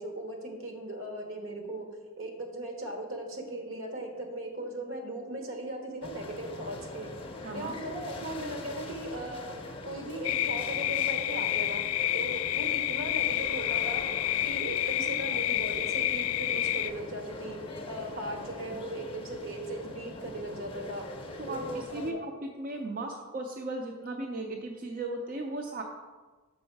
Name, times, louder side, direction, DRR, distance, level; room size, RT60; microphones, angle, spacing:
voice 1, 0.0-1.9 2.2-7.1 7.5-11.8 12.1-14.0 14.4-21.1 21.5-22.2, right 1 dB, 70° right, 2 dB, 1.3 m, -38 dB
sound 1, 6.0-22.1, left 2 dB, 25° left, 0.6 m, -43 dB
voice 2, 7.4-7.8 21.4-22.3 22.6-25.8, right 2 dB, 45° right, 2 dB, 0.5 m, -36 dB
sound 2, 10.2-16.9, left 13 dB, 85° left, 0.3 m, -29 dB
6.2 x 5.4 x 4.6 m, 1.3 s
head